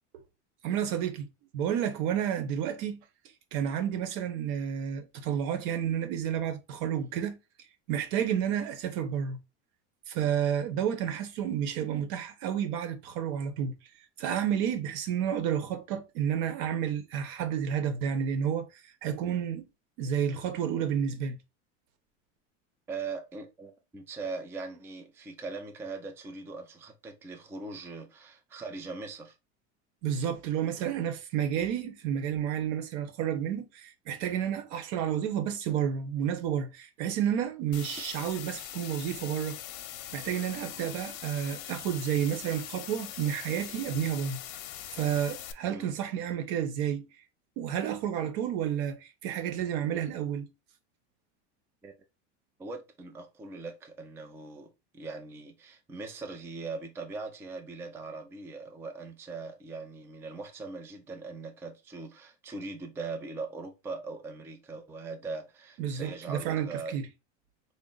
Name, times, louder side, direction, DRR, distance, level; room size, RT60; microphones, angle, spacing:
voice 1, 0.6-1.3 1.5-3.0 3.5-7.4 7.9-9.4 10.1-13.7 14.2-19.6 20.0-21.4 30.0-39.6 40.1-44.4 44.9-47.1 47.6-50.5 65.8-67.0, right 9 dB, 70° right, 1.0 m, -30 dB
voice 2, 22.9-29.3 45.7-45.9 51.8-51.9 52.6-67.0, right 3 dB, 10° right, 0.4 m, -40 dB
sound 1, 37.7-45.5, left 11 dB, 65° left, 0.7 m, -42 dB
4.0 x 2.0 x 3.9 m
supercardioid pair, 135°, 34 cm